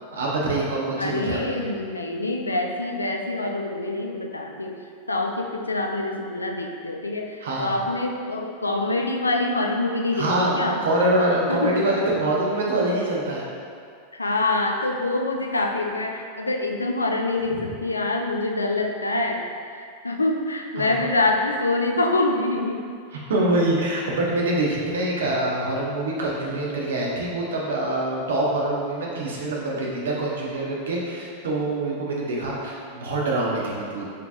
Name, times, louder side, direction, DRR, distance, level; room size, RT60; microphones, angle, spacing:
voice 1, 0.1-1.6 7.4-7.8 10.1-13.5 20.8-21.1 23.1-34.1, right 1 dB, 65° right, -3 dB, 0.9 m, -25 dB
voice 2, 1.0-4.8 5.1-10.8 11.5-11.8 14.1-22.9, left 2 dB, 80° left, 2 dB, 0.4 m, -25 dB
6.4 x 3.4 x 2.4 m, 2.2 s
figure-of-eight pair, 90°, 0 cm